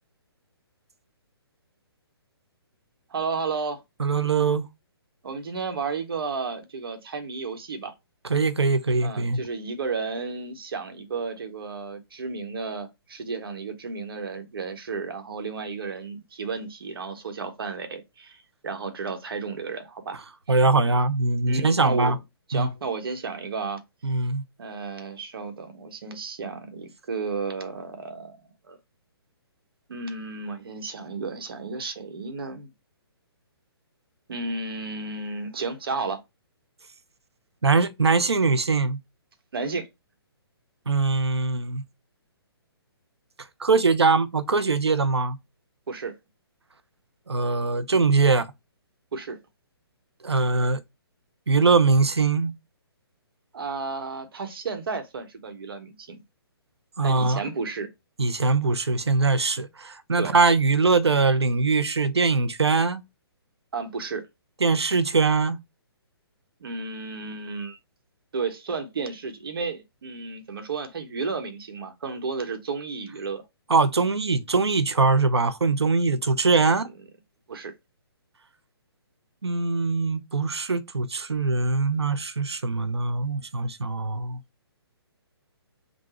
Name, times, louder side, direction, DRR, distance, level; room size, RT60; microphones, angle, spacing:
voice 1, 3.1-3.8 5.2-7.9 9.0-20.2 21.5-22.1 22.5-23.8 24.6-28.4 28.6-28.8 29.9-32.7 34.3-36.2 39.5-39.9 45.9-46.1 49.1-49.4 53.5-56.2 57.0-57.9 60.2-60.4 63.7-64.2 66.6-67.8 68.3-73.4 76.8-76.9 77.5-77.7, right 4 dB, 60° right, 1.1 m, -33 dB
voice 2, 4.0-4.7 8.3-9.4 20.5-22.2 22.5-22.7 24.0-24.4 37.6-39.0 40.9-41.8 43.6-45.4 47.3-48.5 50.2-50.8 51.5-52.5 57.0-57.4 58.2-63.0 64.6-65.6 73.7-76.9 79.4-84.4, right 4 dB, 85° right, 0.7 m, -22 dB
3.9 x 2.4 x 4.3 m
figure-of-eight pair, 135°, 13 cm